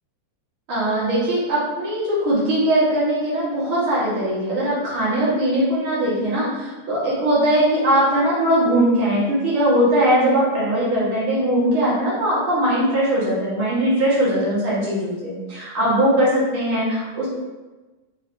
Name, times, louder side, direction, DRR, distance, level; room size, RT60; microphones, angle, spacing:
voice 1, 0.7-17.3, right 1 dB, 55° right, -8 dB, 1.8 m, -20 dB
5.1 x 2.7 x 2.9 m, 1.2 s
omnidirectional pair, 3.5 m